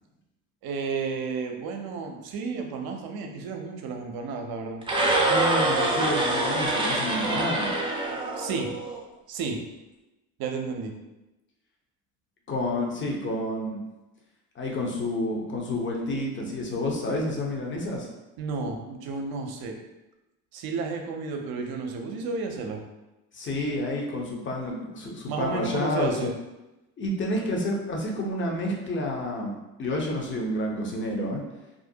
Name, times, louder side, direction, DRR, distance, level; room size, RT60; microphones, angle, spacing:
voice 1, 0.6-4.8 8.4-8.7 9.3-9.6 10.4-10.9 18.4-19.8 20.5-22.8 25.3-26.3, right 4 dB, 55° right, 3 dB, 0.6 m, -32 dB
sound 1, 4.8-9.0, right 2 dB, 10° right, 0.5 m, -25 dB
voice 2, 5.3-7.7 12.5-13.8 14.6-18.1 23.3-26.3 27.0-31.4, left 1 dB, 30° left, -1 dB, 0.7 m, -29 dB
2.5 x 2.0 x 2.7 m, 1.0 s
hypercardioid pair, 65°, 43 cm